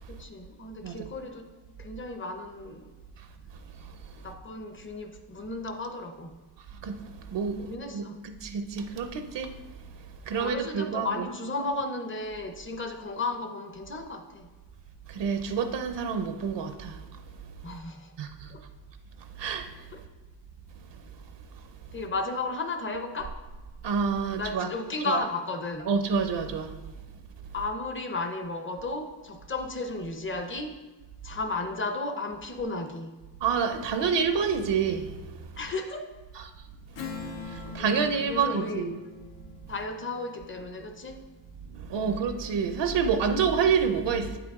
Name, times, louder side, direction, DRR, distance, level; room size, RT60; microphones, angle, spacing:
voice 1, 0.1-1.5 1.8-2.9 4.2-6.3 7.7-8.2 10.3-14.5 17.6-18.1 18.5-18.6 19.9-20.0 21.9-23.4 24.3-25.9 27.5-30.8 31.2-33.1 35.6-36.1 37.6-38.9 39.7-41.2 42.0-42.2, left 3 dB, 30° left, 6 dB, 0.6 m, -34 dB
voice 2, 6.8-9.5 10.2-11.3 15.1-17.0 18.2-18.5 19.4-19.9 23.8-24.7 25.0-25.2 25.9-26.8 33.4-35.5 36.3-36.5 37.4-39.0 41.7-44.4, right 6 dB, 75° right, 7 dB, 0.6 m, -28 dB
Strum, 36.9-41.8, left 5 dB, 85° left, 0.8 m, -43 dB
8.3 x 5.0 x 3.5 m, 1.2 s
wide cardioid pair, 140°, 43 cm